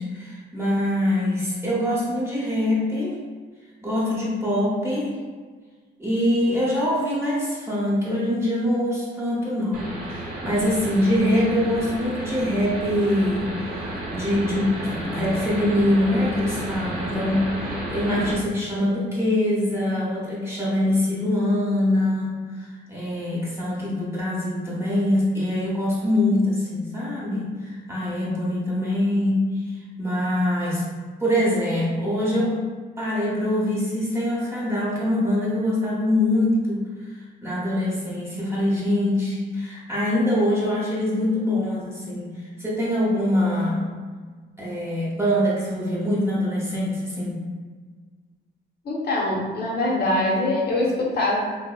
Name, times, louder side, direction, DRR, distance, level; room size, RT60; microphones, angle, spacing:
voice 1, 0.0-3.2 3.8-5.1 6.0-30.9 31.2-32.6 33.0-43.9 44.6-47.4, left 1 dB, 10° right, -7 dB, 0.8 m, -24 dB
sound 1, 9.7-18.3, right 1 dB, 50° right, 0.9 m, -32 dB
voice 2, 48.8-51.4, left 2 dB, 55° left, -5 dB, 0.7 m, -23 dB
2.7 x 2.0 x 2.3 m, 1.5 s
cardioid pair, 90°, 20 cm